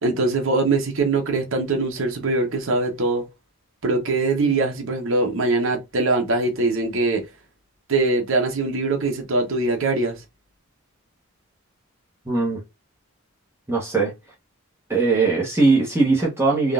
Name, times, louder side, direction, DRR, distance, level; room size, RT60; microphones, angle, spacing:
voice 1, 0.0-3.2 3.8-7.2 7.9-10.2, right 3 dB, 60° right, 0.9 m, -22 dB
voice 2, 12.3-12.6 13.7-14.1 14.9-16.7, right 3 dB, 10° right, 1.0 m, -20 dB
3.6 x 2.4 x 2.3 m
head